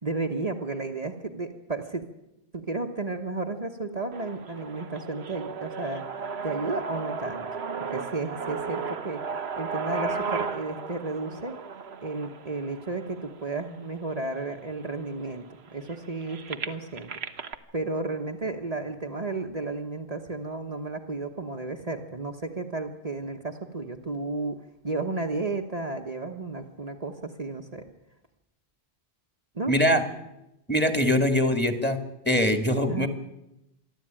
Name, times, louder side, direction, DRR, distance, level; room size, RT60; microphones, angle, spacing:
voice 1, 0.0-2.0 2.5-6.0 6.4-7.5 7.9-9.2 9.6-11.6 12.0-15.4 15.7-17.1 17.7-24.6 24.8-27.8 29.5-29.7 32.9-33.1, right 3 dB, 40° right, 3 dB, 1.3 m, -33 dB
sound 1, 4.1-14.1 14.7-14.8 15.1-17.6, right 5 dB, 90° right, 1.3 m, -35 dB
voice 2, 29.7-30.0 30.7-32.0 32.3-33.1, left 1 dB, 10° left, 6 dB, 2.0 m, -22 dB
27.0 x 11.5 x 8.9 m, 0.89 s
omnidirectional pair, 1.1 m